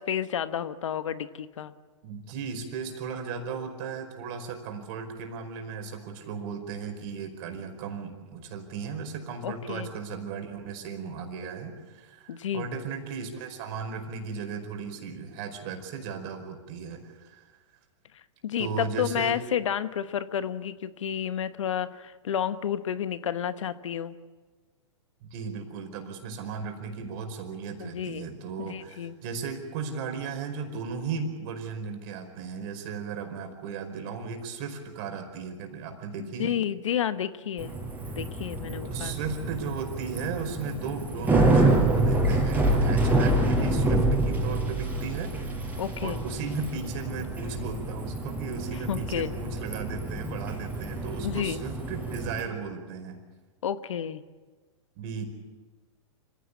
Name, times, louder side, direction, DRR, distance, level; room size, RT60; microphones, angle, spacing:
voice 1, 0.0-1.7 9.4-9.9 12.3-12.7 18.1-24.2 27.8-28.3 28.6-29.2 36.2-37.7 38.1-39.1 45.8-46.2 48.9-49.3 51.2-51.6 53.6-54.2, left 9 dB, 75° left, 13 dB, 1.1 m, -31 dB
voice 2, 2.0-17.4 18.6-19.4 25.2-36.6 38.8-45.4 45.7-53.2 55.0-55.2, right 5 dB, 50° right, 5 dB, 4.9 m, -36 dB
Bicycle, 37.6-52.4, right 2 dB, 10° right, 5.1 m, -27 dB
26.5 x 16.5 x 8.5 m, 1.3 s
hypercardioid pair, 115°, 16 cm